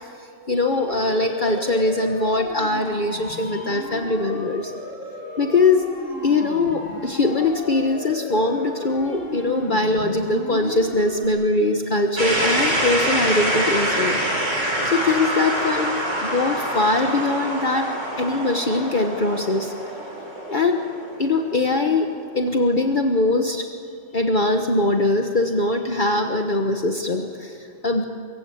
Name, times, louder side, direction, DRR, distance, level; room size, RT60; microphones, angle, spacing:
voice 1, 0.0-4.7 5.4-5.9 6.2-14.2 14.8-17.9 18.2-19.7 20.5-20.8 21.2-22.1 22.3-23.7 24.1-28.0, left 2 dB, 40° left, 3 dB, 1.5 m, -22 dB
Siren, 0.9-11.3, left 2 dB, 90° left, 3.4 m, -34 dB
sound 1, 12.2-22.0, right 1 dB, 75° right, 5.5 m, -25 dB
24.5 x 23.5 x 8.5 m, 2.4 s
omnidirectional pair, 1.3 m